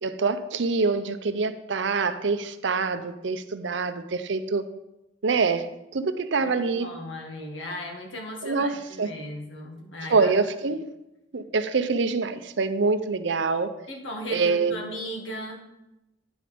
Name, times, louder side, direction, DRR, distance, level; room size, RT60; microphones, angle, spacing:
voice 1, 0.0-4.6 5.2-6.9 8.4-9.1 10.1-10.8 11.3-13.7 14.3-14.8, right 4 dB, 70° right, 10 dB, 0.6 m, -25 dB
voice 2, 6.4-10.3 13.9-15.6, equal, 85° left, 1 dB, 1.8 m, -37 dB
9.5 x 5.1 x 5.1 m, 0.92 s
head